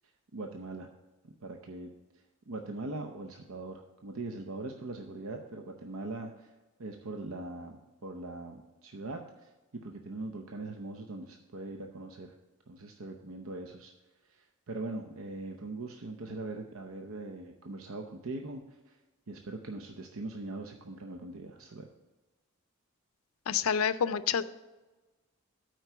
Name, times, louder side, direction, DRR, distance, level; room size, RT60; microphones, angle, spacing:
voice 1, 0.3-0.9 1.2-1.9 2.5-6.5 6.8-9.5 9.8-12.3 12.7-13.9 14.2-19.0 19.3-21.9, right 2 dB, 75° right, 3 dB, 0.7 m, -41 dB
voice 2, 23.5-24.4, left 7 dB, 80° left, 14 dB, 0.4 m, -28 dB
9.1 x 4.6 x 6.8 m, 1.2 s
head